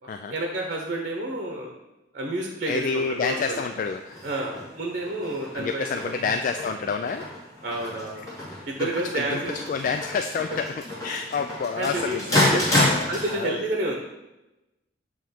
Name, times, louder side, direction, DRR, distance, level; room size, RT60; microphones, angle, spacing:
voice 1, 0.0-1.8 2.1-3.6 4.2-6.3 7.6-8.3 8.7-9.6 11.7-12.7 13.1-14.0, right 1 dB, 45° right, 0 dB, 1.0 m, -30 dB
voice 2, 2.7-4.2 5.5-7.3 8.8-9.4 9.7-10.7 11.0-13.6, left 5 dB, 45° left, 6 dB, 0.3 m, -28 dB
sound 1, 2.9-13.3, left 1 dB, 20° left, 2.4 m, -30 dB
7.7 x 3.1 x 5.8 m, 0.99 s
head